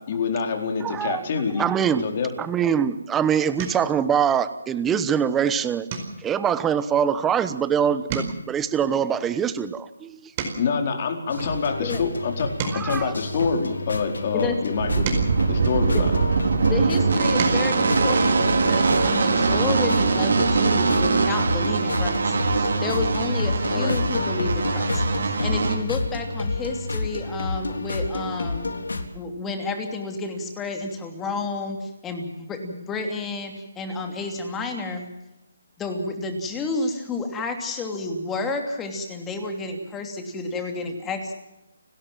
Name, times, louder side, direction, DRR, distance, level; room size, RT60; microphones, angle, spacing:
voice 1, 0.1-1.6 2.0-2.3 10.6-15.1 15.5-16.1 23.7-23.9, left 5 dB, 40° left, 4 dB, 4.5 m, -26 dB
voice 2, 0.8-1.2 1.6-2.0 2.4-5.9 6.2-10.3 12.7-13.1, right 8 dB, 10° right, 13 dB, 1.0 m, -23 dB
sound 1, 3.5-4.0 4.5-4.8 5.1-5.3 5.8-7.7 8.0-10.9 11.5-14.0 14.6-16.5 17.0-17.7 19.1-19.2 19.5-19.7, right 4 dB, 30° right, 4.8 m, -35 dB
sound 2, 11.3-29.0, left 3 dB, 85° left, 3.6 m, -30 dB
sound 3, 14.8-25.7, right 4 dB, 70° right, 5.0 m, -22 dB
voice 3, 16.7-28.7 29.1-35.1 35.8-41.3, left 3 dB, 10° left, 4 dB, 2.9 m, -30 dB
29.5 x 12.5 x 7.5 m, 0.94 s
hypercardioid pair, 160°, 0 cm